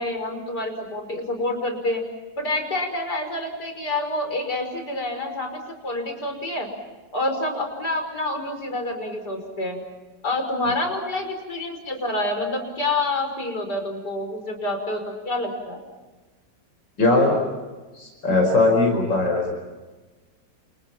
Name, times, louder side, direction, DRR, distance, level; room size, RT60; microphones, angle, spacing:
voice 1, 0.0-2.0 2.4-6.7 7.1-9.8 10.2-15.8, left 2 dB, 60° left, 5 dB, 6.1 m, -27 dB
voice 2, 17.0-17.3 18.0-19.5, left 2 dB, 90° left, 2 dB, 5.7 m, -19 dB
29.5 x 29.5 x 5.9 m, 1.3 s
omnidirectional pair, 1.9 m